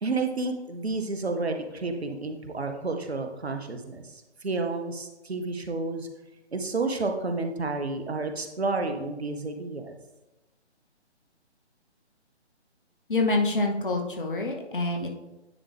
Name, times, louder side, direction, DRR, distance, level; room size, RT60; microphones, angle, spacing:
voice 1, 0.0-6.1 6.5-10.0, right 3 dB, 65° right, 5 dB, 0.9 m, -30 dB
voice 2, 13.1-15.1, left 2 dB, 50° left, 3 dB, 1.0 m, -26 dB
9.5 x 3.5 x 3.4 m, 0.99 s
figure-of-eight pair, 145°, 34 cm